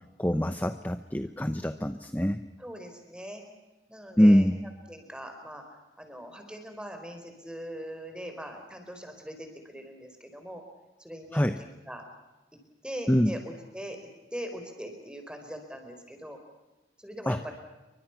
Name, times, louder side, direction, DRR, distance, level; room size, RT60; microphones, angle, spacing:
voice 1, 0.2-2.4 4.2-4.6 11.3-11.6 13.1-13.3 17.3-17.4, equal, 10° left, 9 dB, 0.8 m, -24 dB
voice 2, 2.6-3.4 3.9-4.5 4.9-5.6 6.0-10.6 11.0-12.1 12.8-13.4 13.7-14.0 14.3-16.4 17.0-17.5, equal, 5° right, 5 dB, 4.3 m, -41 dB
29.5 x 24.0 x 5.9 m, 1.1 s
head